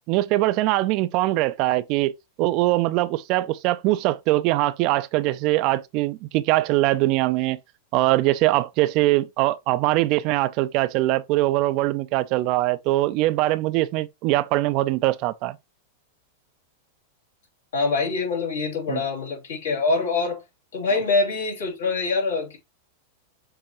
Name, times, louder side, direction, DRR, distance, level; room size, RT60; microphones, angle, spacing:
voice 1, 0.1-2.1 2.4-7.6 7.9-15.6 18.9-19.0, right 17 dB, 50° right, 0.4 m, -22 dB
voice 2, 17.7-20.4 20.7-22.6, left 3 dB, 80° left, 3.1 m, -24 dB
6.7 x 2.6 x 3.0 m
hypercardioid pair, 105°, 0 cm